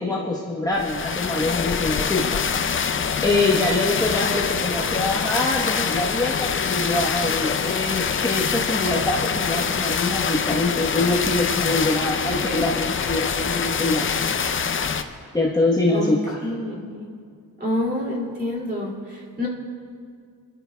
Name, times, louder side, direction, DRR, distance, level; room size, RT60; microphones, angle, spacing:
voice 1, 0.0-2.5 3.2-14.1 15.3-16.5, left 2 dB, 10° left, -5 dB, 1.0 m, -24 dB
sound 1, 0.7-15.0, left 6 dB, 35° left, 0.5 m, -25 dB
voice 2, 16.4-17.1 17.6-19.5, left 1 dB, 25° right, -3 dB, 2.6 m, -28 dB
25.5 x 12.0 x 2.3 m, 2.1 s
wide cardioid pair, 135°, 38 cm